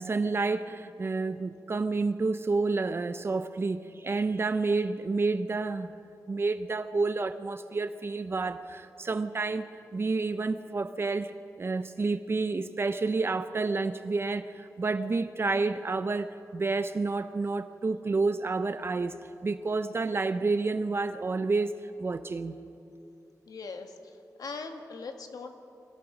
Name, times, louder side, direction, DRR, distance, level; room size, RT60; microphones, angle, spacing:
voice 1, 0.0-5.9 6.3-22.6, right 3 dB, 40° right, 11 dB, 0.6 m, -29 dB
voice 2, 23.5-25.5, left 4 dB, 80° left, 5 dB, 1.7 m, -41 dB
25.0 x 17.5 x 6.2 m, 2.6 s
wide cardioid pair, 130°, 6 cm